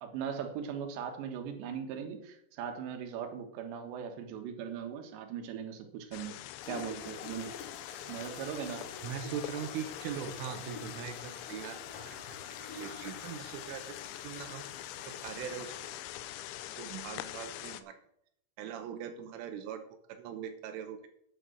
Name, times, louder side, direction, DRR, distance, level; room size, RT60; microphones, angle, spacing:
voice 1, 0.0-7.5 8.1-8.9, right 7 dB, 70° right, 5 dB, 3.6 m, -39 dB
sound 1, 6.1-17.8, left 13 dB, 80° left, 2.8 m, -44 dB
sound 2, 6.6-16.2, left 5 dB, 55° left, 2.7 m, -48 dB
voice 2, 9.0-13.8 14.2-14.7 15.1-15.7 16.8-18.0 18.6-19.8 20.1-21.0, right 8 dB, 90° right, 6 dB, 3.5 m, -41 dB
9.6 x 9.1 x 6.2 m, 0.72 s
omnidirectional pair, 5.6 m